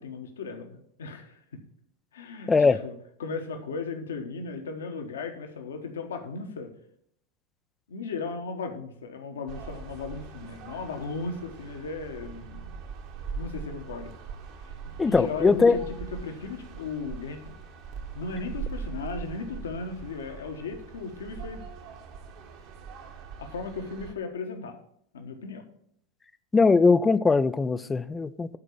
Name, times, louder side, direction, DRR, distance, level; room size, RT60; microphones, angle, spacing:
voice 1, 0.0-1.6 2.1-2.9 3.2-6.7 7.9-12.8 13.3-14.1 14.6-14.7 15.0-17.6 18.1-21.6 23.4-24.8 25.1-25.6, left 4 dB, 65° left, 6 dB, 1.2 m, -36 dB
voice 2, 2.5-2.8 15.0-15.8 26.5-28.6, left 4 dB, 15° left, 15 dB, 0.4 m, -21 dB
sound 1, 9.5-24.1, right 5 dB, 45° right, 1.3 m, -41 dB
11.0 x 4.5 x 6.7 m, 0.70 s
figure-of-eight pair, 90°, 0 cm